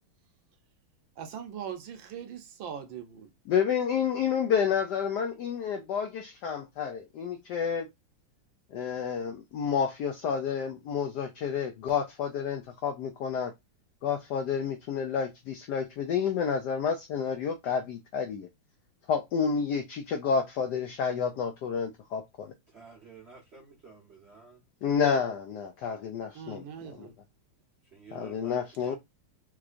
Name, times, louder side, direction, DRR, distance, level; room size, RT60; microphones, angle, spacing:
voice 1, 1.2-3.3 26.3-27.1, right 8 dB, 70° right, 1.3 m, -41 dB
voice 2, 3.5-7.9 8.7-13.5 14.0-18.5 19.1-22.5 24.8-27.1 28.1-29.0, left 7 dB, 85° left, 0.9 m, -30 dB
voice 3, 22.7-24.6 27.8-29.0, right 4 dB, 55° right, 0.7 m, -51 dB
3.5 x 3.0 x 2.4 m
omnidirectional pair, 2.4 m